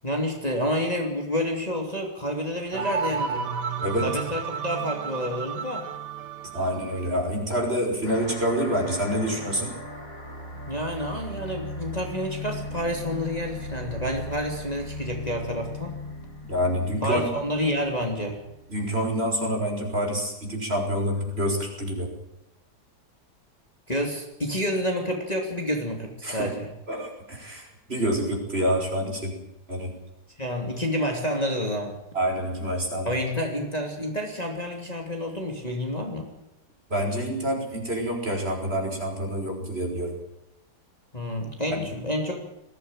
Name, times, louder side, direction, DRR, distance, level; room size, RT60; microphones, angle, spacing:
voice 1, 0.0-3.5 4.0-5.9 10.7-16.0 17.0-18.4 23.9-26.7 30.4-31.9 33.0-36.3 41.1-42.4, equal, 25° left, 1 dB, 3.0 m, -29 dB
sound 1, 2.7-7.3, right 6 dB, 90° right, 2.0 m, -32 dB
voice 2, 6.5-9.7 16.5-17.3 18.7-22.1 26.2-26.5 26.9-29.4 29.7-29.9 32.1-33.1 36.9-40.1 41.7-41.8, equal, 35° right, 1 dB, 5.9 m, -27 dB
sound 2, 8.0-19.0, left 1 dB, 50° left, 5.9 m, -38 dB
21.0 x 15.5 x 9.0 m, 0.86 s
omnidirectional pair, 1.8 m